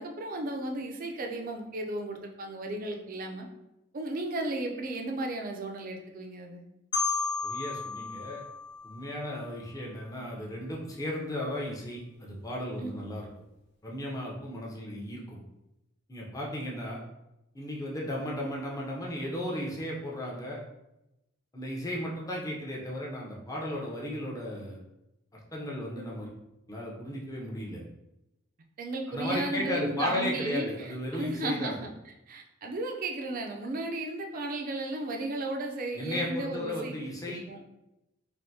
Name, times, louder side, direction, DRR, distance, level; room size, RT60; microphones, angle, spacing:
voice 1, 0.0-3.5 3.9-6.6 12.8-13.1 28.8-31.9 32.3-37.0 37.3-37.6, right 2 dB, 45° right, 3 dB, 0.4 m, -34 dB
Marimba xylophone, 6.9-9.8, left 4 dB, 55° left, 1.1 m, -34 dB
voice 2, 7.4-8.4 8.8-13.3 13.8-15.4 16.1-17.0 17.5-20.6 21.5-24.8 25.3-26.3 26.7-27.8 29.1-31.9 35.9-37.4, left 1 dB, 15° left, -3 dB, 0.6 m, -35 dB
3.4 x 2.5 x 2.7 m, 0.91 s
head